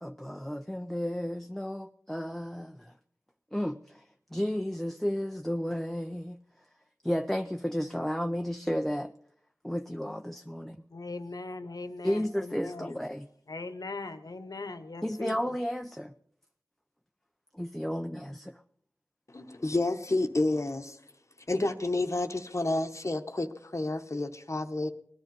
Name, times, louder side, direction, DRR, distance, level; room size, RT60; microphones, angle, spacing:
voice 1, 0.0-2.9 3.5-4.0 4.3-6.4 7.0-9.1 9.6-10.8 12.0-13.3 15.0-16.1 17.5-18.6, equal, 5° left, 0.6 m, -33 dB
voice 2, 10.9-13.0 13.5-15.4, left 3 dB, 80° left, 1.1 m, -39 dB
voice 3, 19.3-21.0 21.5-24.9, left 2 dB, 50° left, 1.0 m, -30 dB
19.0 x 10.5 x 5.3 m
wide cardioid pair, 45°, 6 cm